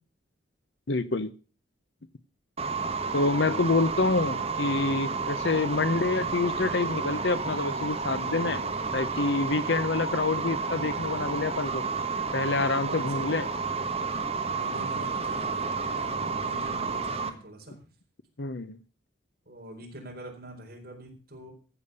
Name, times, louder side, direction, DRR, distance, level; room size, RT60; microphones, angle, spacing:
voice 1, 0.9-1.3 3.1-8.6 8.9-11.8 12.3-13.5 18.4-18.8, left 3 dB, 60° left, 14 dB, 0.8 m, -27 dB
sound 1, 2.6-17.3, right 4 dB, 30° right, 1.3 m, -31 dB
voice 2, 12.7-13.5 14.4-17.8 19.5-21.5, right 1 dB, 50° right, 0 dB, 4.5 m, -44 dB
15.0 x 7.3 x 6.8 m, 0.37 s
head